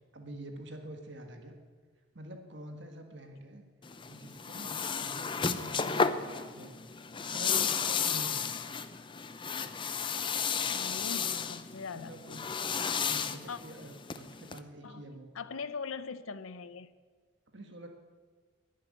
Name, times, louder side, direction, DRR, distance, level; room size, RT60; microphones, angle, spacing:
voice 1, 0.1-1.5 2.1-3.6 4.1-6.8 7.1-8.5 11.9-12.7 13.0-15.3 17.5-17.9, right 1 dB, 55° right, 4 dB, 1.5 m, -47 dB
sound 1, 3.8-14.6, left 6 dB, 25° left, 0.5 m, -33 dB
voice 2, 10.3-12.3 13.5-13.6 14.8-15.0 15.3-16.9, left 5 dB, 80° left, 14 dB, 0.7 m, -41 dB
11.0 x 10.5 x 9.9 m, 1.5 s
head